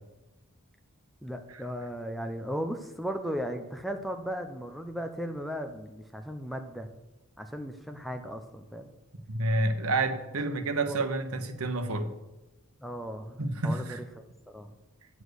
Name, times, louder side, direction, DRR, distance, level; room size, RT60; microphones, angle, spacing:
voice 1, 1.2-6.9 7.4-8.9 10.5-10.6 10.9-11.0 12.8-14.2 14.5-14.8, equal, ahead, 0.6 m, -36 dB
voice 2, 9.3-12.1 13.4-14.0, right 2 dB, 75° right, 1.0 m, -29 dB
8.1 x 7.3 x 6.4 m
head